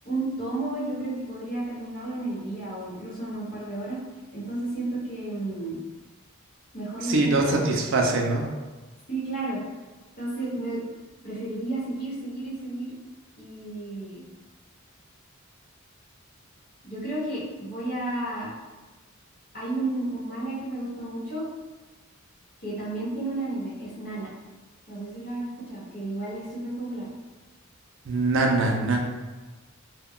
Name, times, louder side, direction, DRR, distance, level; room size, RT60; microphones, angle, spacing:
voice 1, 0.0-4.0 4.3-5.8 6.7-7.4 7.9-8.1 9.1-9.6 10.2-10.8 11.2-12.9 13.4-14.2 16.8-18.5 19.5-21.4 22.6-24.3 24.9-27.1, right 2 dB, 45° left, -8 dB, 1.1 m, -32 dB
voice 2, 7.0-8.5 28.1-29.0, right 2 dB, 65° right, 1 dB, 0.4 m, -23 dB
2.2 x 2.2 x 3.6 m, 1.2 s
head